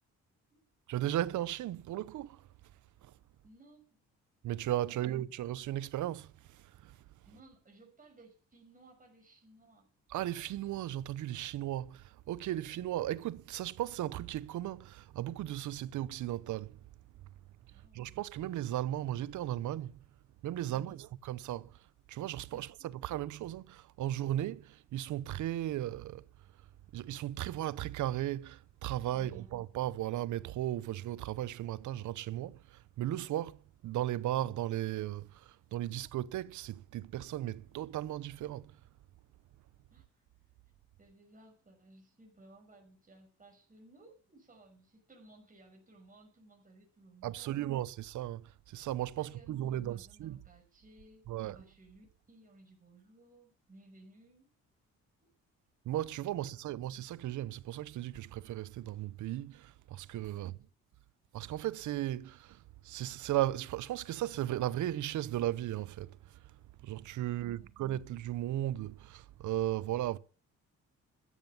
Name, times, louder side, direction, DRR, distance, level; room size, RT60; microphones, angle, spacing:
voice 1, 0.9-2.5 3.0-3.1 4.4-7.0 10.1-16.8 17.9-20.0 20.4-21.7 22.1-26.3 26.9-38.8 47.2-50.4 51.3-51.6 55.8-60.6 61.3-66.4 66.8-70.2, right 13 dB, 75° right, 0.8 m, -36 dB
voice 2, 3.4-4.0 4.9-5.1 7.2-9.9 17.7-18.2 20.7-21.0 22.5-22.9 29.1-29.5 35.9-36.0 39.9-40.1 41.0-47.7 49.2-54.5 55.2-55.3 56.3-56.5 60.3-60.6 67.2-67.8, right 2 dB, 25° right, 6.3 m, -59 dB
13.5 x 9.1 x 7.1 m
cardioid pair, 90°, 30 cm